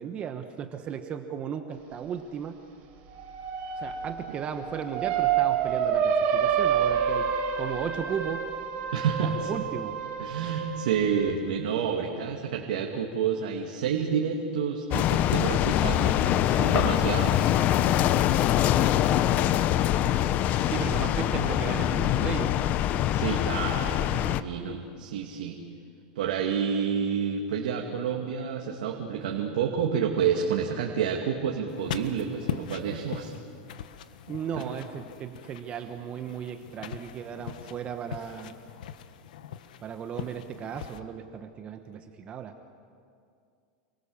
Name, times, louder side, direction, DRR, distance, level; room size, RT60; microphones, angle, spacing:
voice 1, 0.0-2.6 3.8-7.3 7.6-8.5 9.2-10.0 20.6-22.6 34.3-38.6 39.8-42.6, right 8 dB, 30° right, 7 dB, 1.3 m, -35 dB
sound 1, 3.1-11.3, right 8 dB, 45° right, 4.6 m, -28 dB
voice 2, 8.9-9.5 10.2-17.5 20.5-20.7 23.1-25.6 26.2-33.3 34.6-34.7, right 7 dB, 85° right, 1 dB, 2.5 m, -29 dB
sound 2, 14.9-24.4, left 12 dB, 40° left, 0.8 m, -24 dB
sound 3, 31.7-41.0, left 9 dB, 90° left, 1.4 m, -41 dB
29.5 x 23.5 x 7.3 m, 2.3 s
supercardioid pair, 145°, 4 cm